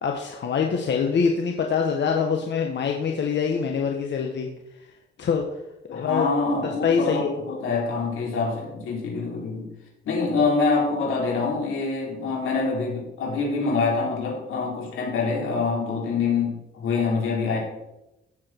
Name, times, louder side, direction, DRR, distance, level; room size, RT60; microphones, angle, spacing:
voice 1, 0.0-4.5 5.2-5.5 5.9-6.3 6.8-7.4 7.7-7.8, left 6 dB, 60° left, 2 dB, 1.4 m, -24 dB
voice 2, 5.9-9.7 10.0-17.6, left 4 dB, 90° left, -3 dB, 4.6 m, -25 dB
16.0 x 7.5 x 4.6 m, 0.93 s
cardioid pair, 105°, 21 cm